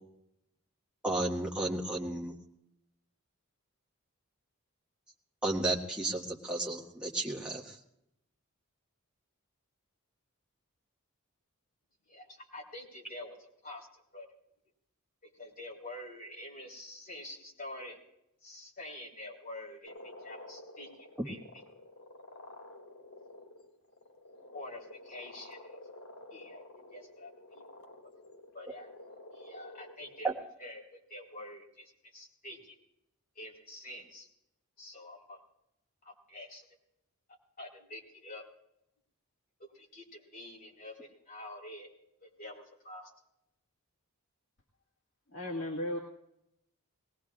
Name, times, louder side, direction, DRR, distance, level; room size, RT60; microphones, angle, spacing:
voice 1, 1.0-2.3 5.4-7.8 30.2-30.3, right 2 dB, 5° right, -3 dB, 1.7 m, -33 dB
voice 2, 12.1-14.3 15.2-18.0 18.4-21.4 24.5-25.8 26.3-28.0 28.5-28.9 29.3-32.8 33.4-34.3 34.8-35.4 36.0-36.7 37.3-38.5 39.6-41.9 42.2-43.1, left 1 dB, 40° left, -3 dB, 3.9 m, -47 dB
sound 1, 19.9-30.3, left 1 dB, 85° left, 2.7 m, -51 dB
voice 3, 45.3-46.0, left 1 dB, 60° left, -2 dB, 2.0 m, -35 dB
21.5 x 18.5 x 2.4 m, 0.82 s
head